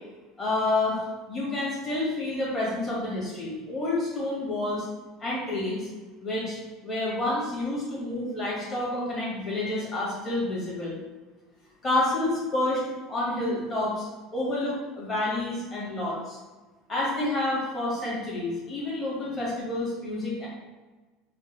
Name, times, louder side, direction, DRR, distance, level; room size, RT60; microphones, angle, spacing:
voice 1, 0.4-4.9 5.2-5.9 6.2-6.6 6.8-11.0 11.8-12.8 13.1-14.0 14.3-16.4 16.9-20.5, left 2 dB, 25° left, -6 dB, 1.4 m, -29 dB
3.3 x 2.2 x 3.3 m, 1.2 s
supercardioid pair, 135°, 0 cm